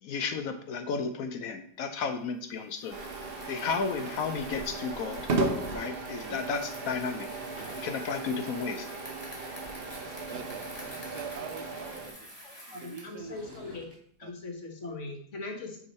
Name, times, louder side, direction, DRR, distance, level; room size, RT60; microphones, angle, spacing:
voice 1, 0.0-3.0 3.5-5.3 5.7-7.3 7.7-8.9, left 5 dB, 70° left, 7 dB, 0.9 m, -33 dB
Bicycle, 2.7-13.2, equal, 15° left, 2.1 m, -48 dB
sound 1, 2.9-12.1, right 3 dB, 45° right, 0.9 m, -36 dB
Sliding door / Wood, 7.0-8.3 9.8-9.9 10.1-11.2 13.0-14.0, right 1 dB, 5° right, 3.2 m, -51 dB
voice 2, 10.3-10.7 11.1-12.3 12.7-13.4 14.2-14.3, right 8 dB, 85° right, 10 dB, 1.2 m, -45 dB
voice 3, 12.4-13.9 14.2-15.8, left 3 dB, 50° left, 2 dB, 1.4 m, -40 dB
9.3 x 3.6 x 4.2 m, 0.63 s
omnidirectional pair, 1.7 m